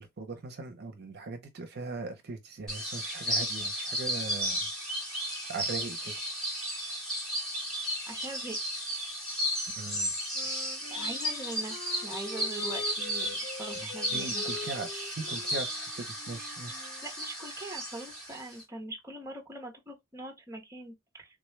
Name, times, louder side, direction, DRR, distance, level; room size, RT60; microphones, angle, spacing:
voice 1, 0.0-4.7 5.5-6.2 9.8-10.1 13.7-16.7, right 3 dB, 50° right, 0.6 m, -40 dB
sound 1, 2.7-18.6, equal, 5° left, 1.1 m, -34 dB
voice 2, 8.1-8.6 10.4-10.6 10.9-11.8 12.0-14.4 17.0-21.4, right 2 dB, 15° right, 0.7 m, -42 dB
Wind instrument woodwind instrument, 10.3-17.1, left 3 dB, 65° left, 1.7 m, -45 dB
3.6 x 2.2 x 3.1 m
head